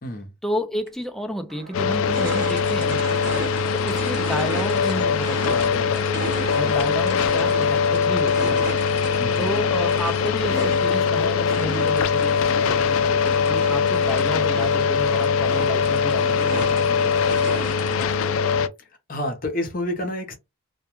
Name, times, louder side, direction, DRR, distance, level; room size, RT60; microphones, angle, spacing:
voice 1, 0.4-3.0 3.7-9.0 9.4-17.3 17.8-18.0, equal, ahead, 0.3 m, -32 dB
sound 1, 0.9-1.0 1.5-18.3, right 3 dB, 55° right, 0.9 m, -35 dB
sound 2, 1.7-18.7, left 6 dB, 85° left, 0.3 m, -22 dB
voice 2, 6.6-7.0 9.2-9.5 19.1-20.3, left 1 dB, 45° left, 0.7 m, -29 dB
2.2 x 2.2 x 2.9 m
head